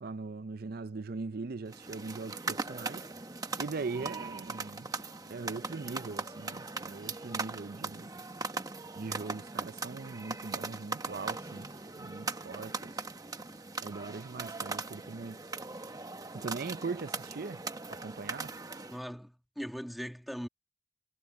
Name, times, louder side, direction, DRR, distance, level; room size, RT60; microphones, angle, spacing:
voice 1, 0.0-3.1 3.6-4.9 5.3-8.1 8.9-13.0 13.8-15.4 16.3-17.6 17.9-18.6, right 4 dB, 45° right, 0.5 m, -40 dB
sound 1, 1.7-19.0, right 3 dB, 20° right, 0.9 m, -40 dB
voice 2, 18.8-20.5, equal, ahead, 1.6 m, -40 dB
head